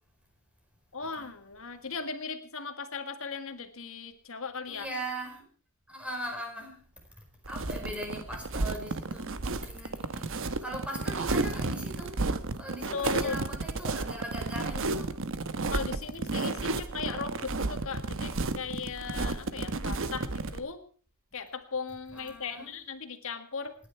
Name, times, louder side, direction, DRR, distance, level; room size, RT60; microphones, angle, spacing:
voice 1, 0.9-4.9 12.9-13.4 15.7-20.8 21.3-23.7, left 5 dB, 65° left, 7 dB, 1.8 m, -37 dB
voice 2, 4.7-5.4 5.9-6.8 7.2-12.2 12.6-15.2 22.1-22.7, right 1 dB, 5° right, 1 dB, 4.9 m, -40 dB
sound 1, 7.4-20.6, right 3 dB, 65° right, 1.1 m, -32 dB
27.5 x 10.5 x 4.5 m, 0.40 s
head